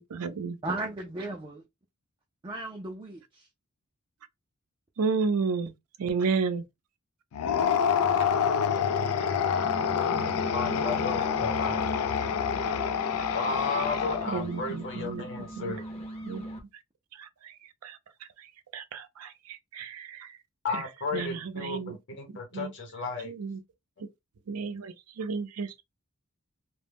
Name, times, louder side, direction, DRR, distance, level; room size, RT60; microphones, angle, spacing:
voice 1, 0.0-0.6 5.0-5.7 6.0-6.6 14.3-15.2 15.6-15.8 16.2-16.4 17.2-17.3 17.8-18.0 18.7-20.3 20.7-20.8 21.1-22.0 22.5-22.7 23.2-23.6 24.5-25.8, right 5 dB, 80° right, 0.5 m, -32 dB
voice 2, 0.6-1.6 2.4-3.5, right 2 dB, 20° right, 0.4 m, -35 dB
sound 1, 7.3-14.5, left 7 dB, 85° left, 0.3 m, -27 dB
sound 2, 9.4-16.6, right 1 dB, 30° left, 0.6 m, -39 dB
voice 3, 10.5-11.8 13.3-15.8 20.6-23.3, left 3 dB, 55° left, 0.9 m, -34 dB
2.2 x 2.0 x 3.3 m
head